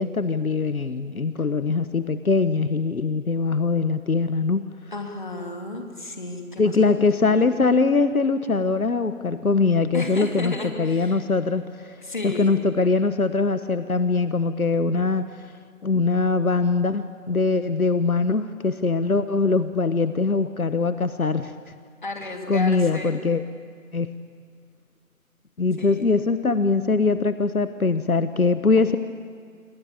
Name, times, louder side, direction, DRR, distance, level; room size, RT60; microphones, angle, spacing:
voice 1, 0.0-4.7 6.6-12.0 12.2-15.2 15.8-21.5 22.5-23.4 23.9-24.1 25.6-29.0, left 4 dB, 75° left, 11 dB, 1.3 m, -22 dB
voice 2, 4.9-7.6 9.9-11.2 12.0-12.6 22.0-23.2 25.8-26.0, left 2 dB, 35° left, 3 dB, 2.8 m, -33 dB
27.5 x 23.5 x 8.9 m, 2.1 s
figure-of-eight pair, 175°, 43 cm